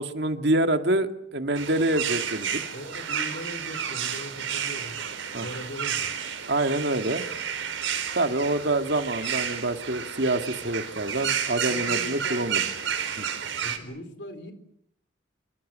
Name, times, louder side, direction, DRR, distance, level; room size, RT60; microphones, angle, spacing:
voice 1, 0.0-2.6 5.3-5.5 6.5-7.3 8.1-12.6 13.2-13.3, right 2 dB, 60° right, 7 dB, 2.2 m, -26 dB
sound 1, 1.5-13.8, right 8 dB, 80° right, 4.5 m, -31 dB
voice 2, 2.7-5.0 5.4-6.1 11.6-12.5 13.6-14.5, equal, 60° left, 9 dB, 4.2 m, -39 dB
27.0 x 24.5 x 7.6 m, 0.70 s
head